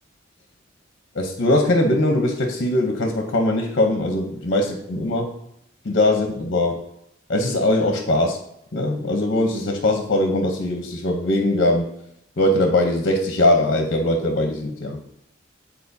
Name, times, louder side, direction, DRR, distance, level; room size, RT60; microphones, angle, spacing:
voice 1, 1.1-5.4 5.8-6.8 7.3-8.4 8.7-11.9 12.4-15.0, left 1 dB, 55° left, 3 dB, 0.8 m, -21 dB
9.2 x 4.2 x 2.7 m, 0.75 s
head